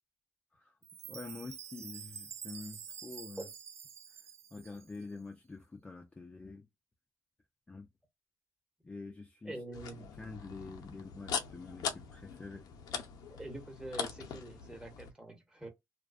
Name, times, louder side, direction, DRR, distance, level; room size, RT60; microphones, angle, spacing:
Chime, 0.8-5.1, right 7 dB, 45° right, 0.3 m, -48 dB
voice 1, 1.1-3.5 4.1-4.2 4.5-6.7 7.7-7.9 8.8-9.6 10.2-12.6, left 3 dB, 20° left, 0.4 m, -46 dB
voice 2, 9.4-10.1 13.3-15.7, right 1 dB, 10° right, 1.0 m, -45 dB
sound 1, 9.7-15.1, left 7 dB, 80° left, 0.5 m, -41 dB
2.5 x 2.2 x 2.4 m
cardioid pair, 105°, 7 cm